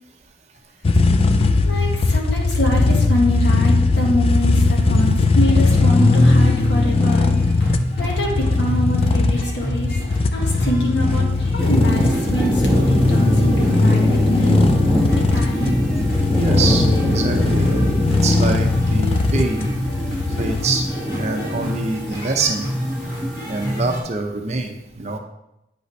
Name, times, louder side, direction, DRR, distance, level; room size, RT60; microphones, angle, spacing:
sound 1, 0.8-20.6, left 3 dB, 35° left, 0.3 m, -18 dB
voice 1, 1.6-7.7 8.0-10.0 10.3-14.6 15.1-15.7, equal, 85° left, -1 dB, 1.6 m, -25 dB
sound 2, 5.3-24.0, equal, 65° left, 1.9 m, -29 dB
sound 3, 11.6-24.0, equal, 5° left, 1.5 m, -24 dB
voice 2, 16.4-17.7 18.1-19.7 20.4-22.7 23.4-25.2, right 3 dB, 40° right, 4 dB, 0.6 m, -25 dB
8.8 x 5.4 x 3.2 m, 0.87 s
head